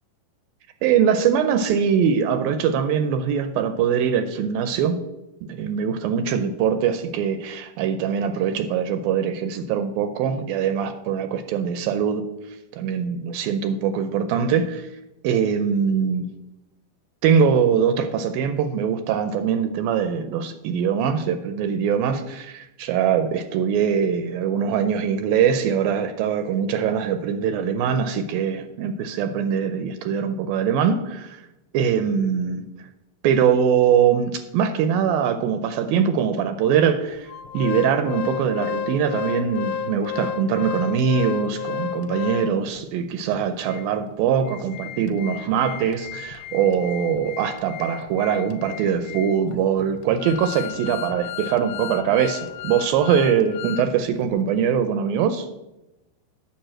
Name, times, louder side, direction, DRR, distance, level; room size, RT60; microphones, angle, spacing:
voice 1, 0.8-5.0 5.4-15.0 15.2-16.3 17.2-31.4 31.7-32.6 33.2-55.5, right 7 dB, 80° right, 9 dB, 2.2 m, -22 dB
Organ, 37.3-42.8 43.3-43.4 43.7-43.8 44.3-53.9 54.2-54.3, left 8 dB, 85° left, 2.4 m, -33 dB
8.9 x 5.2 x 7.7 m, 0.95 s
omnidirectional pair, 4.4 m